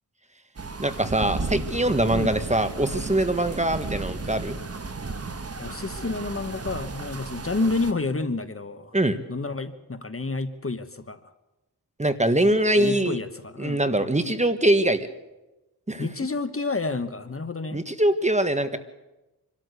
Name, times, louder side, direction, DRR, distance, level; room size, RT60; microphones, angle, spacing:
sound 1, 0.6-7.9, right 3 dB, 35° right, 1.5 m, -34 dB
voice 1, 0.8-4.6 8.9-9.2 12.0-13.2 13.6-15.1 15.9-16.1 17.7-18.8, right 1 dB, 15° right, 10 dB, 1.5 m, -23 dB
voice 2, 5.6-9.0 9.3-11.3 12.8-13.8 16.0-17.8, left 3 dB, 35° left, 10 dB, 1.3 m, -29 dB
25.5 x 13.0 x 8.2 m, 1.0 s
wide cardioid pair, 70°, 39 cm